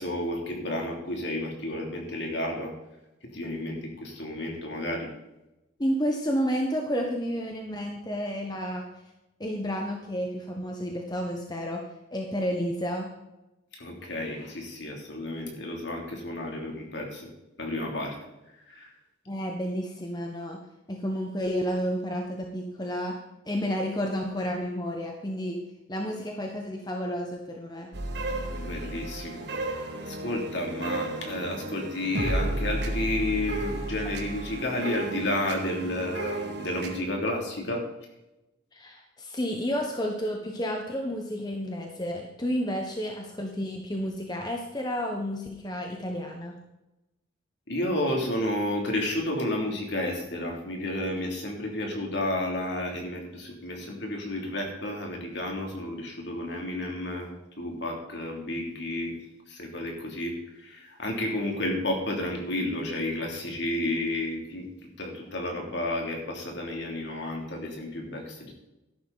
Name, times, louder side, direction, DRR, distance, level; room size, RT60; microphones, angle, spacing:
voice 1, 0.0-2.7 3.3-5.1 13.7-17.3 17.6-18.1 18.7-18.9 28.5-29.5 30.0-37.9 47.7-57.3 57.6-59.2 59.5-64.7 65.0-68.7, left 1 dB, 60° left, 1 dB, 3.1 m, -31 dB
voice 2, 5.8-8.9 9.4-11.8 12.1-13.1 19.3-20.6 20.9-23.2 23.5-25.6 25.9-27.9 38.7-46.5, equal, 20° left, 2 dB, 1.2 m, -31 dB
sound 1, 27.9-37.0, right 1 dB, 55° right, 1.8 m, -33 dB
13.5 x 11.5 x 4.1 m, 0.95 s
head